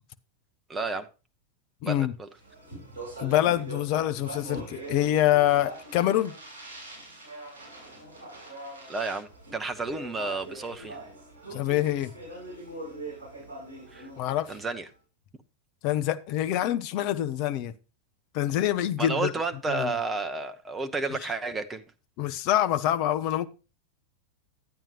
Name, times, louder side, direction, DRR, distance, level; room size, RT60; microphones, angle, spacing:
voice 1, 0.7-1.1 1.9-2.3 8.9-11.0 13.9-14.1 14.5-14.9 19.0-21.8, right 3 dB, 15° right, 0.8 m, -31 dB
voice 2, 1.8-2.1 3.2-6.4 11.5-12.1 14.2-14.5 15.8-17.7 18.3-19.3 19.7-19.9 22.2-23.5, left 12 dB, 45° left, 0.7 m, -25 dB
Speech, 2.4-14.8, right 2 dB, 90° left, 6.7 m, -42 dB
11.5 x 9.0 x 2.9 m
figure-of-eight pair, 90°, 0 cm